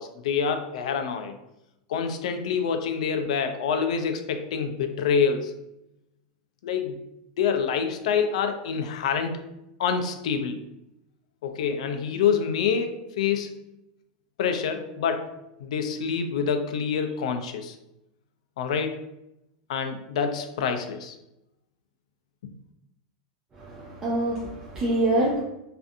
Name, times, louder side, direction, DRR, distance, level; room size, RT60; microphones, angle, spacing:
voice 1, 0.0-1.4 1.9-5.6 6.6-7.0 7.4-9.4 9.8-10.6 11.4-13.5 14.4-15.3 15.6-17.8 18.6-19.0 19.7-21.2 22.4-22.5, left 6 dB, 70° left, 7 dB, 0.3 m, -26 dB
voice 2, 23.5-25.4, right 1 dB, 15° right, -6 dB, 0.3 m, -25 dB
2.5 x 2.5 x 2.4 m, 0.88 s
supercardioid pair, 175°, 4 cm